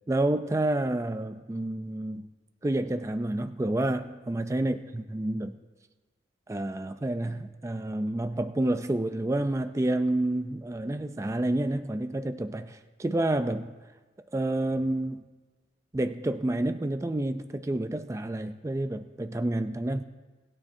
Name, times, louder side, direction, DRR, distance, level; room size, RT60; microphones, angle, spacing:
voice 1, 0.1-2.3 2.6-5.6 6.5-13.8 14.3-15.2 15.9-20.0, right 1 dB, 15° right, 9 dB, 0.3 m, -29 dB
21.0 x 9.8 x 2.7 m, 1.3 s
head